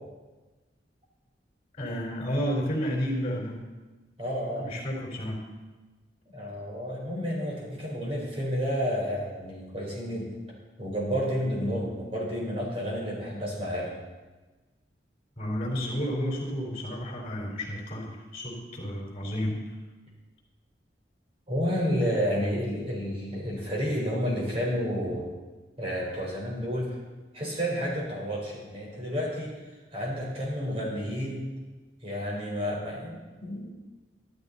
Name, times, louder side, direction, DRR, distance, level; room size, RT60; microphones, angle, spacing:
voice 1, 1.8-3.7 4.6-5.5 15.4-19.6, equal, 35° left, -1 dB, 4.0 m, -31 dB
voice 2, 4.2-4.7 6.3-10.3 10.8-13.9 21.5-25.3 25.8-27.0 27.3-29.5 29.9-31.4 32.0-33.7, equal, 35° right, -4 dB, 4.5 m, -30 dB
13.0 x 12.5 x 4.2 m, 1.2 s
head